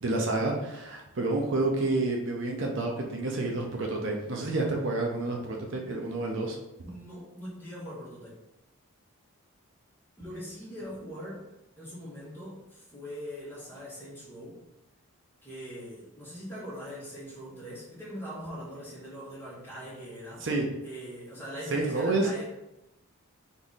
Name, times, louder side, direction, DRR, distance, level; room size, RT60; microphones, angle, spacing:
voice 1, 0.0-6.6 20.4-20.7 21.7-22.3, right 2 dB, 55° right, 0 dB, 0.6 m, -29 dB
voice 2, 6.8-8.4 10.2-11.4 11.8-14.6 15.4-20.5 20.8-22.4, equal, 10° left, -7 dB, 1.3 m, -41 dB
3.6 x 3.0 x 4.0 m, 0.91 s
head